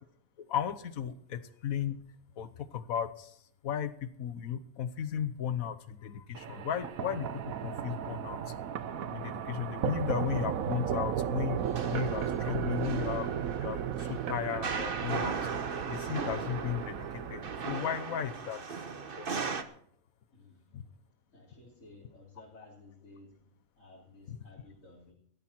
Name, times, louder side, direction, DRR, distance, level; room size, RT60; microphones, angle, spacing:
voice 1, 0.5-2.0 2.4-3.4 3.6-7.3 7.6-8.5 9.1-11.6 11.9-15.3 15.9-18.6 19.2-19.3 20.7-20.8 24.3-24.4, left 9 dB, 90° left, 13 dB, 1.4 m, -35 dB
sound 1, 6.3-17.7, right 8 dB, 80° right, 1.3 m, -35 dB
sound 2, 11.6-19.6, right 5 dB, 45° right, 1.3 m, -38 dB
voice 2, 20.3-21.0 21.3-23.5 23.8-25.1, left 2 dB, 70° left, -4 dB, 3.8 m, -55 dB
16.5 x 13.0 x 4.4 m, 0.65 s
omnidirectional pair, 1.4 m